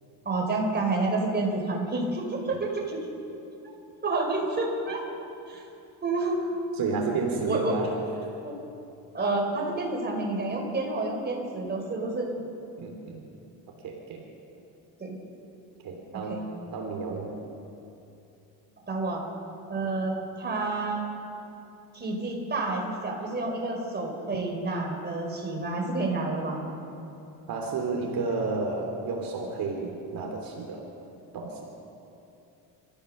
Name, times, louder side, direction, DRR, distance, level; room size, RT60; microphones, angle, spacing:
voice 1, 0.2-3.0 4.0-5.0 5.5-5.6 6.0-6.5 7.4-7.8 8.4-8.5 9.1-12.3 15.0-15.2 16.3-16.4 18.9-19.2 19.7-21.0 21.9-26.8, right 2 dB, 25° right, 0 dB, 4.8 m, -29 dB
voice 2, 6.8-7.9 12.8-13.2 13.7-14.2 15.8-16.4 16.7-17.4 19.1-19.2 27.5-30.9 31.3-31.6, right 4 dB, 60° right, 1 dB, 3.1 m, -31 dB
29.0 x 14.5 x 6.6 m, 2.8 s
cardioid pair, 125°, 39 cm